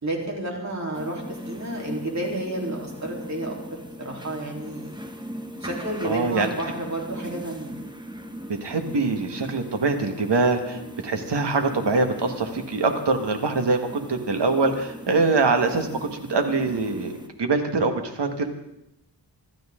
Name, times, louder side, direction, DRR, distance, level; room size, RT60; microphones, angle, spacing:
voice 1, 0.0-3.6 4.0-5.0 5.6-7.7, right 1 dB, 40° right, -1 dB, 3.8 m, -31 dB
sound 1, 0.9-17.3, equal, 10° right, 1.3 m, -39 dB
voice 2, 6.0-6.5 8.6-18.5, right 3 dB, 80° right, 5 dB, 1.9 m, -24 dB
26.0 x 12.5 x 3.8 m, 0.83 s
wide cardioid pair, 130°, 41 cm